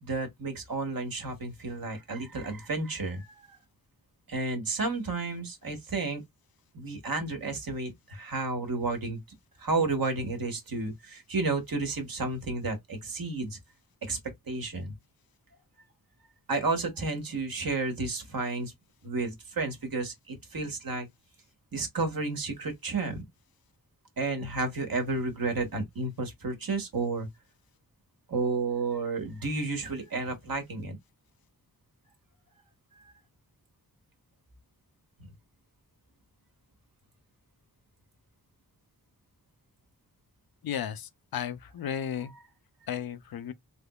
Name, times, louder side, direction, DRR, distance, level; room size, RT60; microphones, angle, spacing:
voice 1, 0.0-3.5 4.3-6.2 6.7-9.2 9.6-13.6 14.0-14.2 14.5-14.9 16.5-18.7 19.0-21.1 21.7-23.2 24.2-27.3 28.3-31.0 33.0-33.1 35.2-35.3, right 3 dB, 65° right, 1.3 m, -32 dB
voice 2, 40.6-42.3 42.9-43.5, left 9 dB, 75° left, 0.5 m, -34 dB
3.5 x 3.0 x 2.3 m
wide cardioid pair, 100°, 37 cm